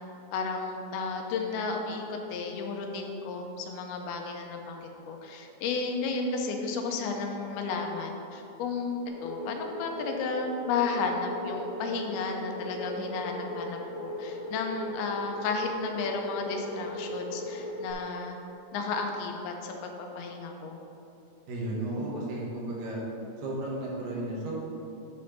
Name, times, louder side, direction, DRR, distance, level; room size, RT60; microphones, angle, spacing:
voice 1, 0.3-18.4 18.7-20.8, left 4 dB, 90° left, 2 dB, 2.6 m, -33 dB
sound 1, 9.1-17.9, left 1 dB, 75° left, 1.5 m, -38 dB
voice 2, 21.5-23.0 23.4-24.5, right 1 dB, 70° right, -4 dB, 2.7 m, -34 dB
9.3 x 4.3 x 5.4 m, 2.8 s
omnidirectional pair, 4.5 m